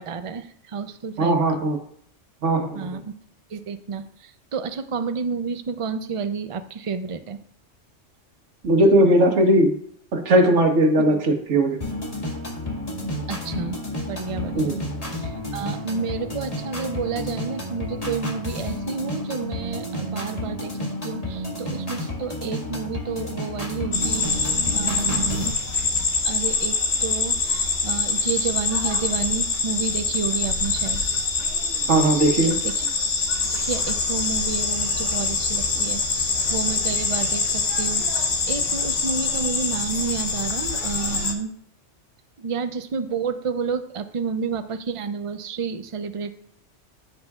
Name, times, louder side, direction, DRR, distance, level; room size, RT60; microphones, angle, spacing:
voice 1, 0.0-1.6 2.7-3.2 3.5-7.4 11.1-11.2 13.3-14.8 15.2-25.6 26.2-31.0 32.6-32.8 33.5-41.5 42.4-46.3, right 5 dB, 40° right, 9 dB, 0.5 m, -30 dB
voice 2, 1.2-1.8 2.4-2.9 8.6-9.8 10.1-11.8 14.5-14.8 31.9-32.6, right 1 dB, 80° right, 3 dB, 1.5 m, -18 dB
sound 1, 11.8-25.5, left 1 dB, 30° left, 1.8 m, -31 dB
sound 2, 23.9-41.3, left 4 dB, 90° left, 1.5 m, -24 dB
15.0 x 5.9 x 2.4 m, 0.65 s
omnidirectional pair, 1.2 m